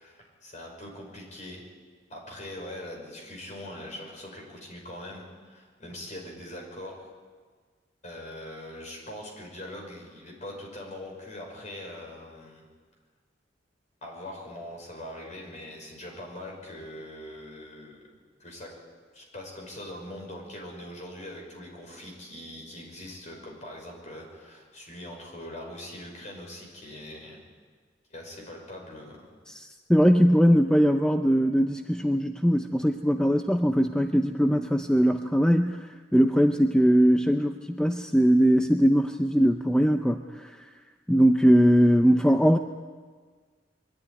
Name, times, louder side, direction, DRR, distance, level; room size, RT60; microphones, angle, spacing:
voice 1, 0.0-1.6 2.1-7.0 8.0-12.6 14.0-18.1 18.4-18.7 19.1-27.4 28.1-29.3, left 1 dB, 40° left, 0 dB, 5.7 m, -42 dB
voice 2, 29.5-40.6 41.1-42.6, equal, 5° left, 6 dB, 0.5 m, -21 dB
23.0 x 12.5 x 9.8 m, 1.5 s
head